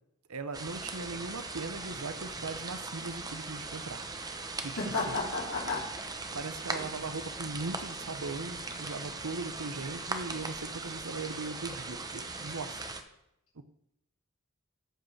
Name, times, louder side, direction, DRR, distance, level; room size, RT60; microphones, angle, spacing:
voice 1, 0.3-4.1 4.6-4.8 5.1-5.2 6.3-12.8 13.5-13.6, right 3 dB, 90° right, 11 dB, 0.9 m, -39 dB
sound 1, 0.5-13.0, right 3 dB, 20° right, 0.9 m, -39 dB
voice 2, 4.8-5.9 6.7-6.9, left 3 dB, 70° left, -4 dB, 3.2 m, -32 dB
14.0 x 5.3 x 6.5 m, 0.83 s
head